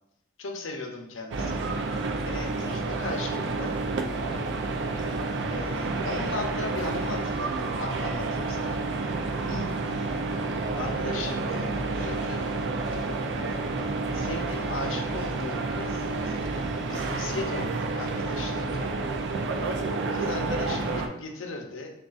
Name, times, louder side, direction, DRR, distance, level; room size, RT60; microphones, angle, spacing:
voice 1, 0.4-1.8 2.2-3.8 5.5-8.8 9.5-9.7 10.8-12.5 13.4-13.6 14.1-16.4 16.7-18.9 19.6-19.7 20.1-21.9, left 3 dB, 75° left, 3 dB, 0.6 m, -37 dB
sound 1, 1.3-21.1, right 3 dB, 60° right, 0.4 m, -30 dB
6.3 x 2.4 x 2.4 m, 0.79 s
head